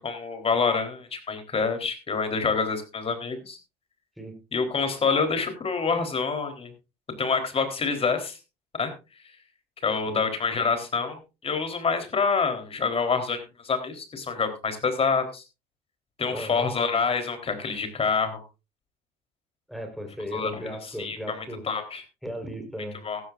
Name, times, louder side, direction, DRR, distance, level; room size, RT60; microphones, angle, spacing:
voice 1, 0.0-3.6 4.5-6.7 7.2-8.4 8.8-8.9 9.8-15.4 16.2-18.4 20.3-22.0 23.0-23.2, left 5 dB, 35° left, 7 dB, 3.8 m, -27 dB
voice 2, 16.3-16.7 19.7-21.6 22.2-23.0, equal, ahead, 5 dB, 4.4 m, -36 dB
15.5 x 13.5 x 2.6 m, 0.28 s
cardioid pair, 110°, 17 cm